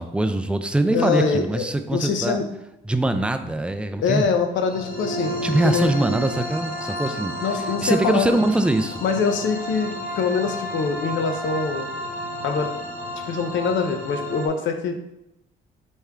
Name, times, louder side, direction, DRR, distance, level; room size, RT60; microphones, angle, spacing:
voice 1, 0.0-2.4 2.8-4.3 5.4-7.4 7.8-9.0, right 2 dB, 5° right, 8 dB, 0.3 m, -22 dB
voice 2, 0.9-1.7 1.9-2.5 4.0-5.3 5.6-5.9 7.4-8.4 9.0-11.9 12.4-12.7 13.3-15.0, left 5 dB, 70° left, 6 dB, 0.7 m, -24 dB
sound 1, 4.6-14.5, left 1 dB, 45° left, 1.0 m, -31 dB
4.4 x 3.4 x 3.5 m, 0.86 s
cardioid pair, 90°, 20 cm